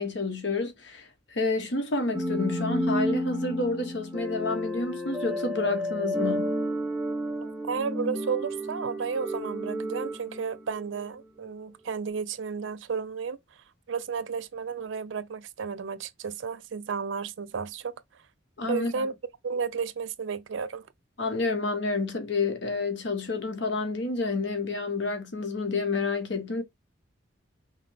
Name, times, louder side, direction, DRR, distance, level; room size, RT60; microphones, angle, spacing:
voice 1, 0.0-6.6 18.6-19.1 21.2-26.6, left 3 dB, 60° left, 1.0 m, -29 dB
sound 1, 2.1-11.1, equal, ahead, 0.6 m, -31 dB
voice 2, 7.4-13.4 13.9-17.9 18.7-19.1 19.4-20.8, right 5 dB, 75° right, 0.5 m, -33 dB
5.6 x 2.1 x 3.4 m
head